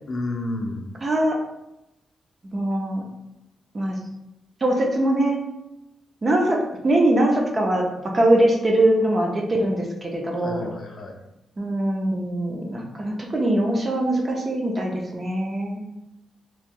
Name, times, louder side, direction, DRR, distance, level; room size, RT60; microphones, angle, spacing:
voice 1, 0.1-1.0 10.3-11.2, left 2 dB, 40° left, 2 dB, 0.5 m, -31 dB
voice 2, 1.0-1.4 2.5-3.0 3.7-4.0 4.6-5.4 6.2-10.7 11.6-15.8, right 1 dB, 25° right, 0 dB, 0.5 m, -22 dB
3.0 x 2.7 x 3.6 m, 0.93 s
wide cardioid pair, 170°, 0 cm